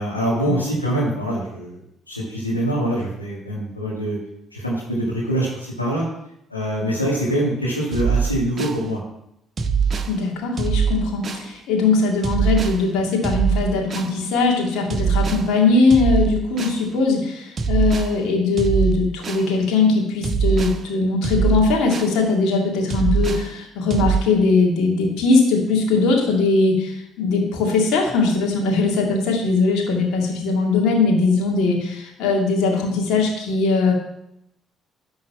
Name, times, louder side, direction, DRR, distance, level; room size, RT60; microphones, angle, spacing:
voice 1, 0.0-1.8 2.1-4.2 4.5-6.1 6.5-9.0, right 1 dB, 90° left, -7 dB, 1.7 m, -24 dB
sound 1, 7.9-8.8 9.6-10.1 10.6-11.5 12.2-12.8 13.2-14.1 14.9-15.5 15.9-16.8 17.6-18.1 18.6-19.5 20.2-20.8 21.2-22.2 22.9-23.5 23.9-24.2, right 6 dB, 40° right, 0.8 m, -22 dB
voice 2, 10.1-33.9, left 3 dB, 60° left, 0 dB, 2.1 m, -20 dB
11.0 x 3.9 x 7.2 m, 0.78 s
figure-of-eight pair, 45°, 0 cm